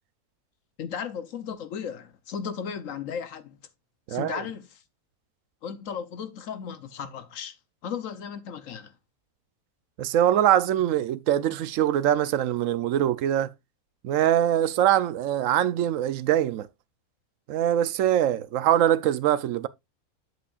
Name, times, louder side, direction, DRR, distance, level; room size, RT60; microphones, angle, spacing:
voice 1, 0.8-3.6 4.1-4.8 5.6-7.6 7.8-8.9, left 7 dB, 65° left, 1.1 m, -35 dB
voice 2, 4.1-4.4 10.0-13.5 14.0-16.7 17.5-19.7, right 11 dB, 70° right, 0.9 m, -23 dB
8.3 x 7.8 x 2.4 m
omnidirectional pair, 1.6 m